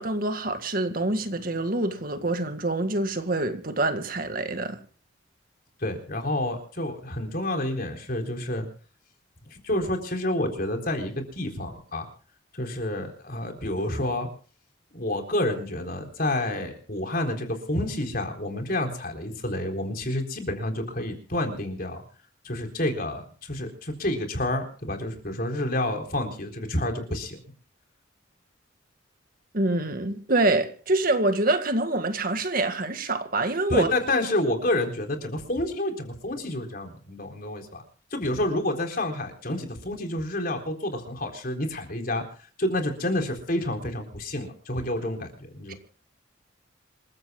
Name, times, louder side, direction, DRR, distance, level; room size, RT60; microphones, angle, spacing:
voice 1, 0.0-4.8 29.5-33.9 45.7-45.8, right 2 dB, 45° right, 1.9 m, -26 dB
voice 2, 5.8-8.7 9.4-12.1 12.5-14.3 14.9-22.0 22.4-27.4 33.7-37.8 38.1-42.2 42.6-45.7, left 1 dB, 45° left, 3.9 m, -29 dB
27.0 x 15.5 x 2.3 m
head